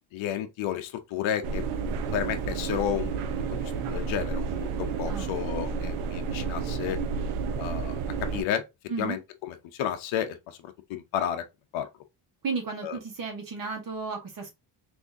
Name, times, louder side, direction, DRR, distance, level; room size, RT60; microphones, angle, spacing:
voice 1, 0.1-1.6 2.1-3.3 3.9-7.0 7.6-8.0 8.3-8.6 9.0-9.2 9.5-11.4 11.7-11.9 12.8-13.0, left 10 dB, 70° left, 0.7 m, -31 dB
sound 1, 1.4-8.4, right 5 dB, 90° right, 0.7 m, -31 dB
voice 2, 12.4-14.5, right 4 dB, 45° right, 1.1 m, -33 dB
3.5 x 2.7 x 2.6 m
cardioid pair, 75°, 48 cm